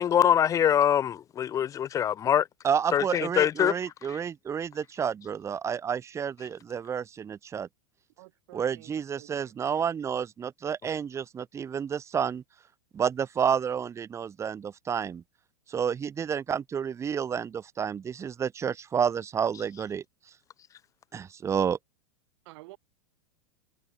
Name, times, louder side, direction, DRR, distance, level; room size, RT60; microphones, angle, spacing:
voice 1, 0.0-2.4 2.9-3.7, left 9 dB, 20° left, 0.5 m, -23 dB
voice 2, 2.6-7.7 8.5-12.4 12.9-15.2 15.7-20.0 21.1-21.8, right 7 dB, 15° right, 0.9 m, -30 dB
voice 3, 8.2-9.6 22.4-22.8, right 22 dB, 60° right, 6.1 m, -51 dB
open air
supercardioid pair, 130°, 16 cm